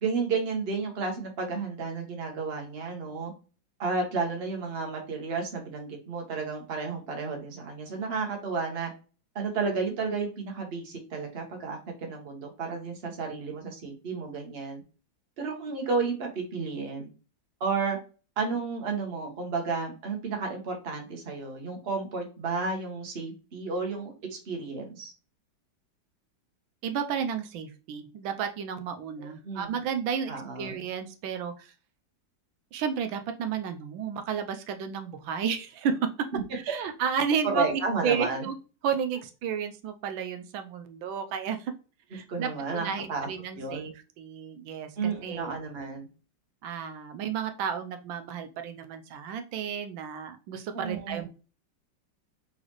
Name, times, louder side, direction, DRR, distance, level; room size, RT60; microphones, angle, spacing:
voice 1, 0.0-3.3 3.8-8.9 9.3-14.8 15.4-17.1 17.6-18.0 18.4-25.1 29.2-29.7 30.3-30.7 37.5-38.5 42.3-43.3 43.6-43.9 45.0-46.1 50.7-51.2, right 4 dB, 40° right, 2 dB, 1.1 m, -32 dB
voice 2, 26.8-31.7 32.7-36.0 36.5-38.5 38.8-41.7 42.1-45.5 46.6-51.3, right 7 dB, 85° right, 8 dB, 1.4 m, -32 dB
4.0 x 3.9 x 3.0 m, 0.34 s
omnidirectional pair, 2.1 m